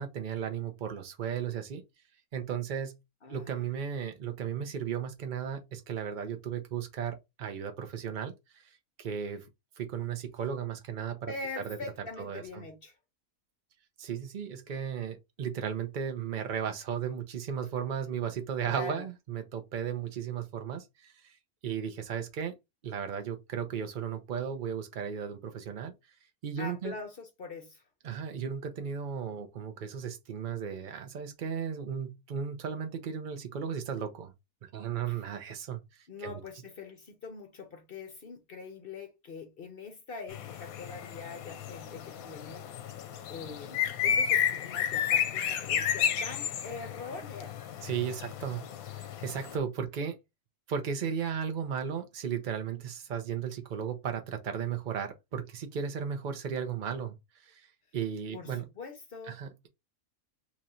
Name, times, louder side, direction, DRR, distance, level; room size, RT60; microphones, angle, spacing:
voice 1, 0.0-1.8 2.3-3.0 3.3-8.7 9.0-9.4 9.8-11.3 11.6-11.8 12.2-12.7 14.0-21.3 21.6-22.5 22.8-25.9 26.4-26.9 28.0-34.3 34.7-35.8 36.2-36.4 47.8-48.6 48.9-50.2 50.7-57.1 57.4-57.7 57.9-58.7 59.3-59.7, right 7 dB, 50° right, 0.6 m, -35 dB
voice 2, 3.2-3.7 11.3-12.9 18.6-19.1 26.6-27.8 35.1-35.2 36.1-42.7 43.3-47.6 58.3-59.4, left 4 dB, 50° left, 0.8 m, -43 dB
sound 1, 40.3-49.6, left 8 dB, 80° left, 1.0 m, -32 dB
3.0 x 2.5 x 4.2 m
omnidirectional pair, 1.5 m